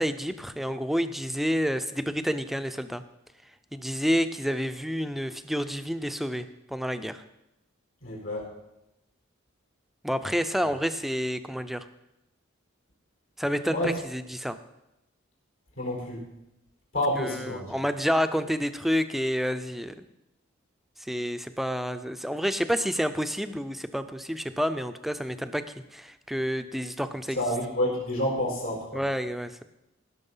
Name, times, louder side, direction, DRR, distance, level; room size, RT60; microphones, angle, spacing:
voice 1, 0.0-3.0 3.7-7.2 10.0-11.8 13.4-14.6 17.2-20.1 21.0-25.6 25.9-27.4 28.9-29.6, equal, ahead, 10 dB, 0.5 m, -29 dB
voice 2, 8.0-8.5 13.7-13.9 15.8-16.3 16.9-17.8 27.4-29.0, left 1 dB, 80° left, -2 dB, 4.6 m, -29 dB
16.5 x 6.4 x 5.5 m, 0.91 s
head